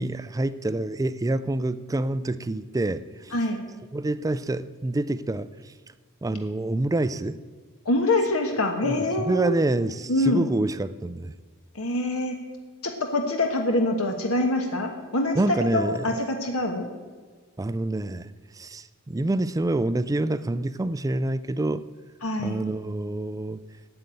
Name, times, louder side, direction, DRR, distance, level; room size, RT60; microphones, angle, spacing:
voice 1, 0.0-3.3 3.9-5.7 6.2-7.4 8.8-11.3 15.3-16.2 17.6-21.8 22.4-23.6, right 2 dB, 15° right, 15 dB, 0.4 m, -27 dB
voice 2, 3.3-3.6 7.8-9.5 10.1-10.5 11.7-12.4 12.8-16.9 22.2-22.6, left 1 dB, 70° left, 4 dB, 1.3 m, -25 dB
9.2 x 8.0 x 8.9 m, 1.4 s
head